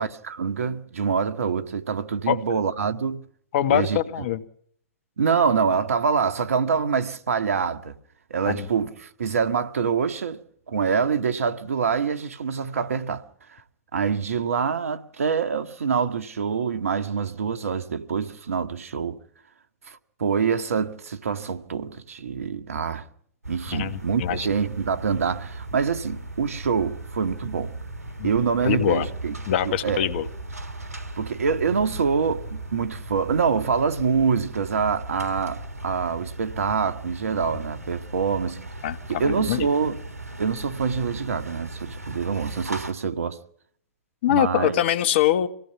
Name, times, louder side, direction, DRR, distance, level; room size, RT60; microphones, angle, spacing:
voice 1, 0.0-3.3 3.7-4.0 5.2-8.0 8.3-10.4 10.7-13.2 13.5-13.6 13.9-19.2 19.9-23.1 23.5-27.7 28.2-29.3 29.6-30.1 31.2-38.6 39.1-40.0 40.4-43.4 44.3-44.8, right 6 dB, 70° right, 1.9 m, -25 dB
voice 2, 3.5-4.4 8.5-8.7 23.7-24.5 28.2-28.3 28.6-29.1 29.5-30.3 38.8-39.7 44.2-45.5, left 11 dB, 45° left, 1.8 m, -23 dB
sound 1, 23.4-42.9, right 2 dB, 85° right, 2.5 m, -37 dB
26.0 x 18.5 x 6.0 m
figure-of-eight pair, 115°, 8 cm